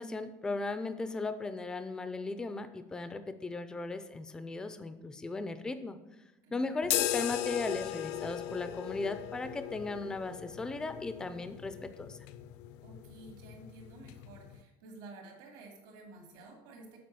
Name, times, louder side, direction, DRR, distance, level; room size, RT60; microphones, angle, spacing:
voice 1, 0.0-6.0 6.5-12.2, left 3 dB, 5° left, 10 dB, 0.3 m, -37 dB
voice 2, 6.4-6.9 12.8-17.0, right 2 dB, 80° right, 1 dB, 2.5 m, -52 dB
sound 1, 6.8-14.6, left 13 dB, 65° left, 0.5 m, -38 dB
7.7 x 5.2 x 6.7 m, 1.0 s
cardioid pair, 180°, 10 cm